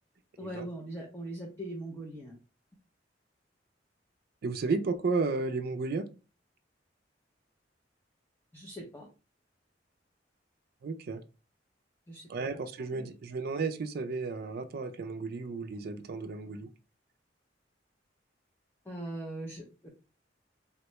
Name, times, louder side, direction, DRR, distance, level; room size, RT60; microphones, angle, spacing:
voice 1, 0.4-2.3 8.5-9.1 12.1-12.2 12.9-13.1 18.9-19.9, right 1 dB, 10° left, -2 dB, 0.5 m, -40 dB
voice 2, 4.4-6.1 10.8-11.2 12.3-16.7, right 4 dB, 55° right, 9 dB, 0.4 m, -33 dB
3.5 x 2.2 x 2.9 m, 0.32 s
head